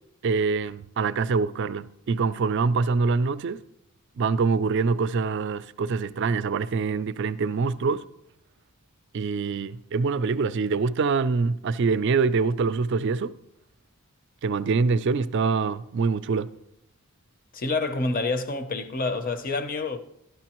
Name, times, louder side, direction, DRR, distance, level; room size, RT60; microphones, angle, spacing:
voice 1, 0.2-3.6 4.2-8.0 9.1-13.3 14.4-16.5, right 4 dB, 55° right, 0.3 m, -25 dB
voice 2, 17.5-20.0, left 3 dB, 40° left, 0.6 m, -27 dB
13.0 x 11.5 x 3.0 m
head